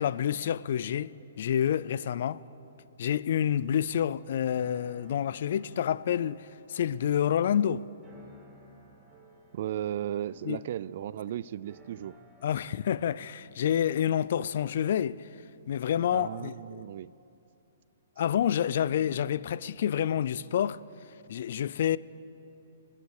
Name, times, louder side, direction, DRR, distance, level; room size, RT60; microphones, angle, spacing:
voice 1, 0.0-2.4 3.0-7.8 10.4-10.6 12.4-15.3 15.7-16.8 18.2-20.8 21.3-22.0, left 9 dB, 60° left, 0.4 m, -28 dB
sound 1, 4.5-13.4, right 3 dB, 15° right, 2.3 m, -58 dB
voice 2, 9.5-12.2 16.1-17.1, right 11 dB, 55° right, 0.3 m, -35 dB
21.5 x 9.8 x 6.6 m
hypercardioid pair, 145°, 0 cm